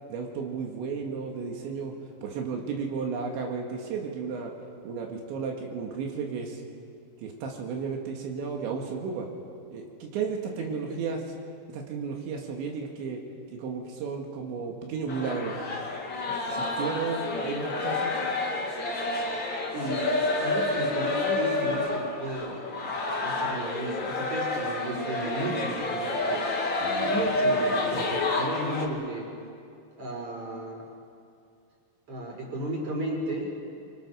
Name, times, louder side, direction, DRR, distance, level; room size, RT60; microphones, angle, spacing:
voice 1, 0.1-1.9 2.2-4.5 4.8-6.6 7.2-9.3 9.7-11.2 11.7-13.2 13.5-15.8 16.3-18.2 26.8-27.2, right 5 dB, 85° right, 1 dB, 4.2 m, -33 dB
voice 2, 10.6-11.0 19.7-23.0 23.2-26.5 27.0-29.3 30.0-30.8 32.1-33.5, right 1 dB, 35° right, -1 dB, 5.3 m, -34 dB
sound 1, 15.1-28.9, left 2 dB, 35° left, 2.1 m, -29 dB
29.0 x 24.5 x 6.3 m, 2.3 s
omnidirectional pair, 5.1 m